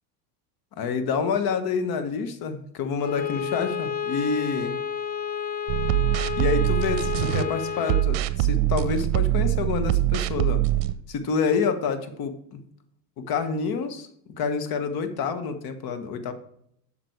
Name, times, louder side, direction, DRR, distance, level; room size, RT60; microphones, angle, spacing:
voice 1, 0.8-4.8 6.4-10.6 11.1-12.6 13.2-14.1 14.4-16.3, left 5 dB, 45° left, 9 dB, 1.3 m, -28 dB
Bowed string instrument, 3.0-8.2, left 8 dB, 20° left, 0.5 m, -31 dB
sound 1, 5.7-7.4 7.8-10.9, right 15 dB, 60° right, 0.8 m, -23 dB
7.8 x 5.9 x 4.7 m, 0.70 s
hypercardioid pair, 85°, 49 cm